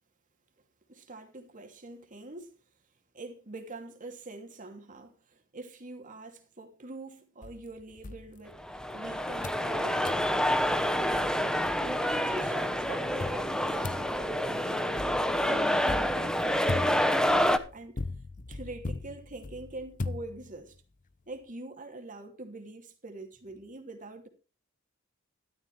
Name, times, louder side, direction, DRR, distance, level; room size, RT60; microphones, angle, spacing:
voice 1, 0.9-2.6 3.1-8.6 8.9-10.0 10.5-10.7 11.8-15.0 15.5-18.0 18.5-20.7 21.3-24.3, right 2 dB, 40° right, 2.8 m, -44 dB
sound 1, 7.4-9.0 9.4-9.7 10.1-10.3 10.8-10.9 11.1-12.2 13.2-20.8, left 3 dB, 40° left, 0.7 m, -39 dB
sound 2, 8.6-17.6, equal, 5° left, 1.0 m, -28 dB
13.0 x 13.0 x 3.3 m
head